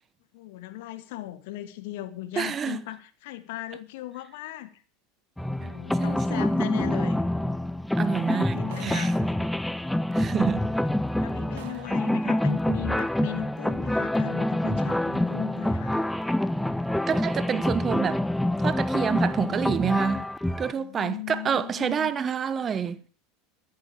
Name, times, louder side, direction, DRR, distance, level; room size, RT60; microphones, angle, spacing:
voice 1, 0.3-4.7 5.6-7.2 8.1-9.3 11.2-15.9 20.7-22.1, left 15 dB, 55° left, 1.4 m, -38 dB
voice 2, 2.4-2.8 6.0-6.6 8.0-9.1 10.1-10.7 17.1-18.2 18.6-20.3 20.6-23.0, right 7 dB, 25° right, 0.9 m, -28 dB
sound 1, 5.4-20.7, left 1 dB, 5° left, 0.6 m, -26 dB
sound 2, 8.7-9.3 10.3-10.4 11.0-11.1 11.6-12.1, right 13 dB, 60° right, 1.0 m, -47 dB
23.0 x 9.6 x 3.6 m
figure-of-eight pair, 80°, 0 cm